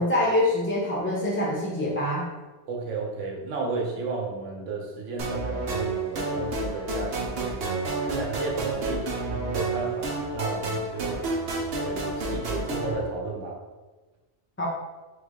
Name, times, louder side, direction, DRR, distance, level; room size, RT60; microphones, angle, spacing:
voice 1, 0.0-2.3 14.6-14.7, left 1 dB, 15° left, -5 dB, 0.4 m, -25 dB
voice 2, 2.7-7.8 8.2-11.2 11.8-13.5, right 4 dB, 80° right, -1 dB, 1.2 m, -33 dB
sound 1, 5.2-12.9, right 2 dB, 60° right, 0.9 m, -30 dB
3.6 x 3.3 x 3.6 m, 1.2 s
omnidirectional pair, 1.2 m